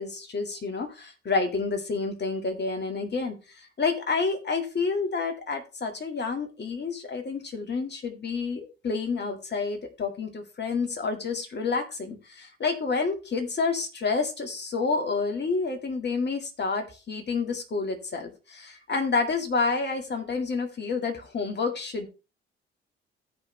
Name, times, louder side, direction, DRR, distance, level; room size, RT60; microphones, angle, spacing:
voice 1, 0.0-3.4 3.8-22.1, left 4 dB, 35° left, 5 dB, 2.1 m, -29 dB
15.5 x 5.2 x 3.2 m, 0.30 s
figure-of-eight pair, 45°, 30 cm